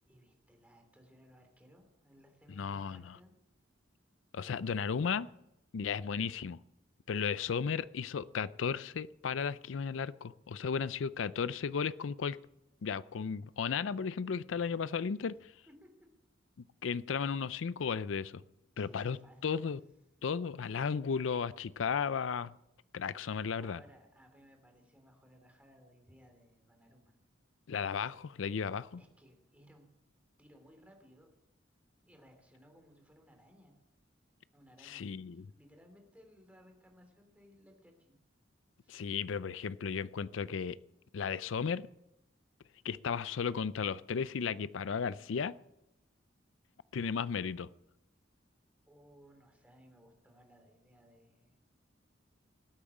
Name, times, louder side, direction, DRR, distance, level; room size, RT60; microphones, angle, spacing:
voice 1, 0.0-3.3 15.7-16.1 18.8-19.5 23.6-27.2 29.0-29.9 30.4-31.3 32.1-33.7 34.5-38.2 38.8-39.0 48.9-51.7, equal, 10° right, 3.1 m, -61 dB
voice 2, 2.5-3.0 4.3-5.3 5.7-6.6 7.1-12.4 12.8-15.5 16.8-18.4 18.8-19.2 19.4-19.8 20.2-22.5 22.9-23.8 27.7-29.0 34.8-35.4 38.9-40.8 41.1-41.9 42.8-45.6 46.9-47.7, left 6 dB, 85° left, 0.5 m, -34 dB
18.0 x 8.6 x 8.3 m
head